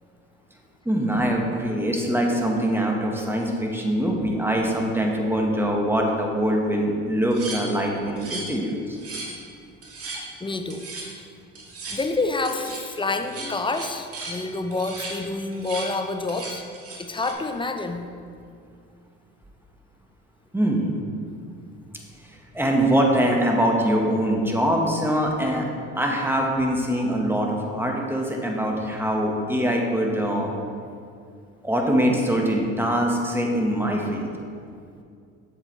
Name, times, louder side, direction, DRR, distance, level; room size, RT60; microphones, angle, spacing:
voice 1, 0.8-9.0 10.1-10.2 20.5-20.9 22.3-25.7 25.9-30.5 31.6-34.3, equal, 5° right, 0 dB, 1.4 m, -23 dB
sound 1, 7.3-8.6 8.9-9.4 9.8-10.3 10.7-11.1 11.6-12.0 12.5-12.9 13.2-14.4 14.7-15.2 15.5-15.9 16.3-17.3, right 3 dB, 45° right, 1.8 m, -36 dB
voice 2, 10.4-10.9 11.1-11.3 11.9-16.6 17.0-18.1, left 3 dB, 15° left, 7 dB, 0.6 m, -28 dB
7.5 x 7.0 x 3.2 m, 2.3 s
hypercardioid pair, 70°, 32 cm